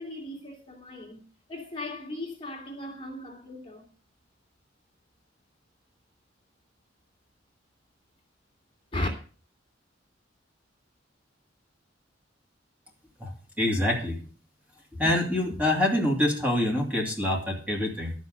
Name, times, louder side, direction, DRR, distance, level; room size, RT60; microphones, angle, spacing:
voice 1, 0.0-3.9 8.9-9.1, left 1 dB, 30° left, 2.7 m, -36 dB
voice 2, 13.2-14.1 15.0-18.1, left 1 dB, 10° right, 2.8 m, -26 dB
12.5 x 6.4 x 6.6 m
head